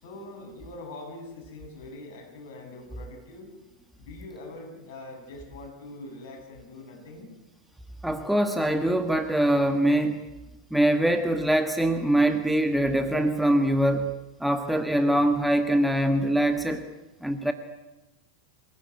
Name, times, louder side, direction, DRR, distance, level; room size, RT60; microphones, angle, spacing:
voice 1, 0.0-3.5 4.1-7.3, left 2 dB, 50° left, 2 dB, 7.8 m, -43 dB
voice 2, 8.0-10.3 10.7-16.8 17.2-17.5, right 1 dB, ahead, 7 dB, 1.5 m, -23 dB
26.0 x 16.5 x 9.5 m, 1.0 s
figure-of-eight pair, 90°, 0 cm